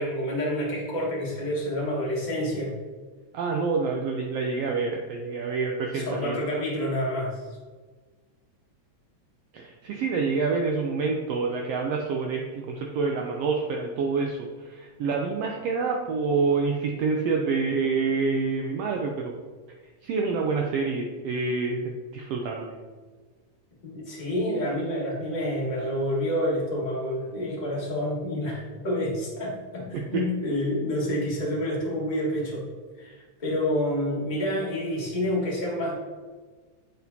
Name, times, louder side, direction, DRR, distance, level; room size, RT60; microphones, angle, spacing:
voice 1, 0.0-2.7 5.9-7.4 23.8-32.7 33.0-35.9, equal, 25° left, -6 dB, 1.0 m, -28 dB
voice 2, 3.3-6.4 9.5-19.3 20.0-22.8 29.9-30.2, right 4 dB, 90° right, 1 dB, 1.4 m, -27 dB
8.0 x 4.3 x 2.7 m, 1.4 s
omnidirectional pair, 3.4 m